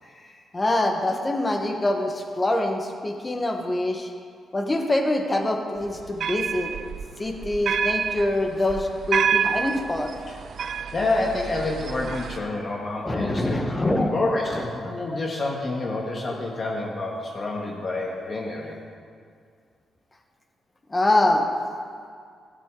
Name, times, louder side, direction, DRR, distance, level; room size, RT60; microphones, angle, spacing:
voice 1, 0.0-0.4 10.3-10.4 10.9-13.6 14.1-18.8, left 2 dB, 40° left, -2 dB, 1.4 m, -28 dB
voice 2, 0.5-4.1 4.5-6.7 7.2-10.1 13.0-14.1 14.5-14.6 15.1-15.2 16.3-16.4 20.9-21.4, left 1 dB, 20° left, 3 dB, 1.2 m, -24 dB
sound 1, 5.8-12.4, right 7 dB, 60° right, 0.4 m, -28 dB
14.0 x 9.8 x 3.8 m, 2.2 s
cardioid pair, 105°, 0 cm